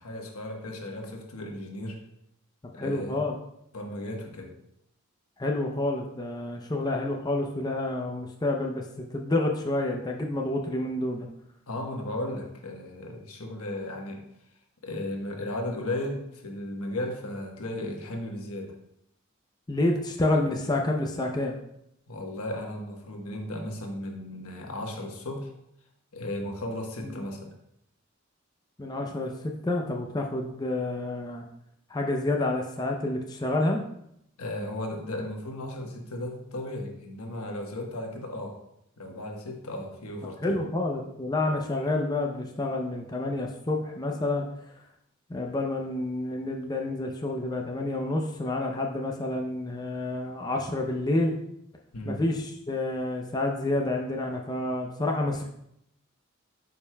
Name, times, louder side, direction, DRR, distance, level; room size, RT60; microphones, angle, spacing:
voice 1, 0.0-2.0 2.7-3.2 3.7-4.5 11.7-14.2 14.8-18.7 22.1-25.5 26.1-27.5 34.4-38.6 39.0-40.6 51.9-52.2, left 1 dB, 85° left, 2 dB, 1.1 m, -35 dB
voice 2, 2.8-3.3 5.4-11.3 19.7-21.5 27.0-27.2 28.8-31.4 31.9-33.8 40.4-44.5 45.3-51.4 52.0-55.5, left 2 dB, 20° left, 1 dB, 0.5 m, -29 dB
9.2 x 5.3 x 2.2 m, 0.77 s
head